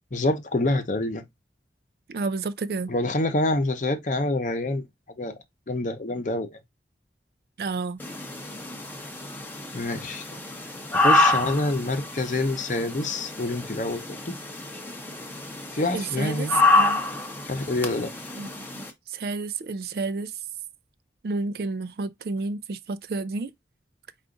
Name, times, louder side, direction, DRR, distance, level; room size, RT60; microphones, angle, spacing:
voice 1, 0.1-1.2 2.9-4.8 5.2-5.3 5.7-6.5 9.7-10.2 10.9-14.4 15.7-16.6 17.5-18.1, left 2 dB, 45° left, 0.7 m, -26 dB
voice 2, 2.1-2.9 7.6-8.0 15.9-16.5 16.8-17.0 18.4-18.5 18.7-20.3 21.2-23.5, right 3 dB, 60° right, 0.4 m, -30 dB
sound 1, 8.0-18.9, left 2 dB, 10° left, 0.6 m, -27 dB
4.8 x 2.5 x 3.7 m
head